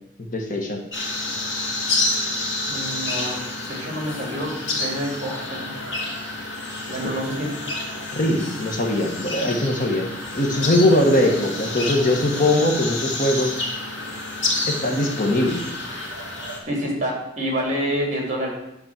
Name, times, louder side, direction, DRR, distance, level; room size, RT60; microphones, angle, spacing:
voice 1, 0.2-0.8 6.9-7.1 8.1-13.6 14.7-15.6, left 1 dB, 45° left, 2 dB, 1.3 m, -21 dB
sound 1, 0.9-16.6, left 2 dB, 80° left, 2.4 m, -29 dB
voice 2, 2.7-3.4 3.7-5.8 6.9-7.5 16.7-18.5, equal, 35° right, 0 dB, 2.7 m, -27 dB
9.8 x 4.3 x 7.4 m, 0.86 s
head